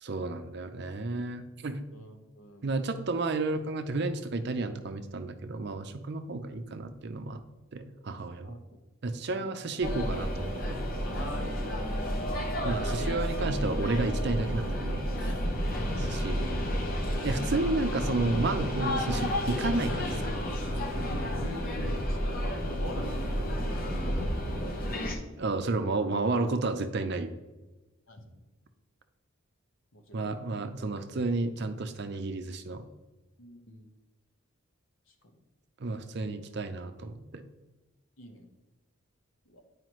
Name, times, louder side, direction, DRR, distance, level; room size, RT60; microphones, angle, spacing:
voice 1, 0.0-1.8 2.6-7.4 7.7-8.5 9.0-10.8 12.6-15.0 16.1-16.4 17.2-20.3 25.4-27.3 30.1-32.8 35.8-37.5, right 3 dB, 50° right, 9 dB, 0.5 m, -31 dB
voice 2, 1.9-3.1 8.4-8.6 9.3-9.8 11.0-11.5 11.9-13.2 15.1-15.7 16.3-16.6 17.5-17.8 21.0-23.7 28.1-28.4 29.9-30.3 33.4-33.9 35.1-35.4 38.2-38.5 39.5-39.6, left 1 dB, 65° left, 4 dB, 1.1 m, -45 dB
sound 1, 9.8-25.2, equal, 40° left, 0.8 m, -31 dB
9.3 x 4.9 x 3.1 m, 1.1 s
head